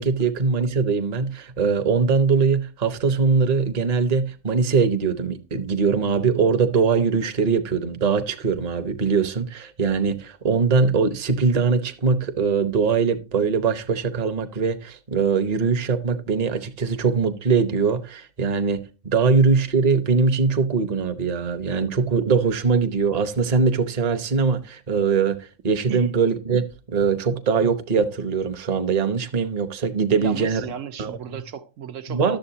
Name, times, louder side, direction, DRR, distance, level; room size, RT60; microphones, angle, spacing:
voice 1, 0.0-18.8 19.0-30.6 31.0-31.4 32.1-32.4, right 5 dB, 35° right, 0.8 m, -22 dB
voice 2, 30.1-32.4, right 8 dB, 80° right, 1.1 m, -35 dB
11.5 x 7.4 x 2.8 m
omnidirectional pair, 1.3 m